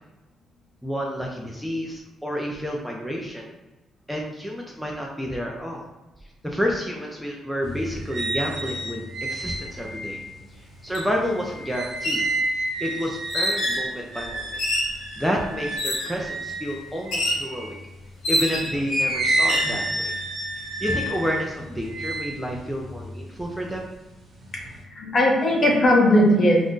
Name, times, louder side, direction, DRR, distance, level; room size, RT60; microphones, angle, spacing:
voice 1, 0.8-3.5 4.1-5.8 6.4-9.0 9.3-10.2 10.8-12.3 12.8-14.6 15.2-17.8 18.3-20.2 20.8-23.9, equal, ahead, -1 dB, 0.4 m, -29 dB
sound 1, 7.6-17.8 18.3-23.8 24.2-24.8, right 1 dB, 50° right, 1.0 m, -30 dB
sound 2, 10.9-11.1 11.9-12.3 13.3-13.9 14.6-15.0 15.8-16.2 17.1-17.5 18.2-18.8 19.4-19.7, left 1 dB, 75° left, 0.7 m, -26 dB
voice 2, 24.9-26.7, left 1 dB, 40° left, -1 dB, 0.8 m, -18 dB
2.5 x 2.1 x 3.6 m, 1.1 s
cardioid pair, 90°, 0 cm